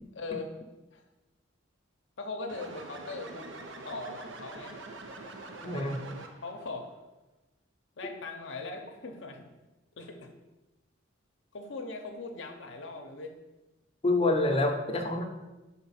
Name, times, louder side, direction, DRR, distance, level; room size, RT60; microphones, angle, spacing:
voice 1, 0.1-0.5 0.9-1.0 2.2-3.5 3.8-4.8 6.4-6.9 8.0-9.4 10.0-10.3 11.5-13.4 14.4-14.6, left 3 dB, 65° left, 3 dB, 0.7 m, -40 dB
sound 1, 2.5-6.6, right 2 dB, 70° right, 0.7 m, -44 dB
voice 2, 5.6-6.0 14.0-15.2, left 2 dB, 30° left, 3 dB, 0.7 m, -27 dB
5.1 x 4.1 x 5.6 m, 1.1 s
head